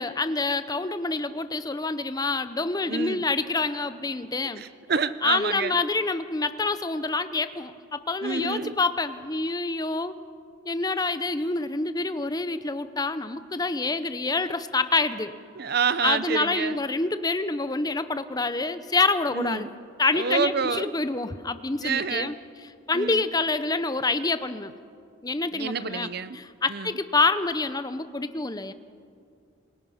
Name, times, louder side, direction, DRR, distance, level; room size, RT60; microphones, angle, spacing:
voice 1, 0.0-4.6 5.2-10.2 10.7-15.3 16.0-19.7 20.0-22.3 22.9-24.7 25.2-28.7, left 3 dB, 20° left, 12 dB, 0.7 m, -27 dB
voice 2, 2.9-3.2 4.6-5.8 8.2-8.8 15.5-16.8 19.3-19.7 20.1-20.9 21.8-22.3 22.9-23.2 25.5-26.4 26.7-26.9, right 5 dB, 50° right, 14 dB, 0.7 m, -28 dB
27.5 x 21.0 x 5.7 m, 2.3 s
head